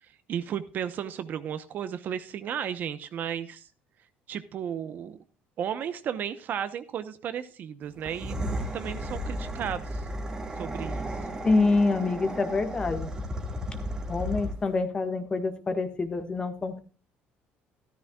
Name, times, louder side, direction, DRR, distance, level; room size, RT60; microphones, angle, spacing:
voice 1, 0.3-3.6 4.3-5.2 5.6-10.1 10.6-11.1, right 9 dB, 50° right, 11 dB, 0.9 m, -34 dB
sound 1, 8.0-14.8, equal, 15° right, 1.9 m, -34 dB
voice 2, 11.4-13.1 14.1-16.8, left 3 dB, 20° left, 8 dB, 1.5 m, -26 dB
14.0 x 13.0 x 2.3 m, 0.35 s
cardioid pair, 135°, 4 cm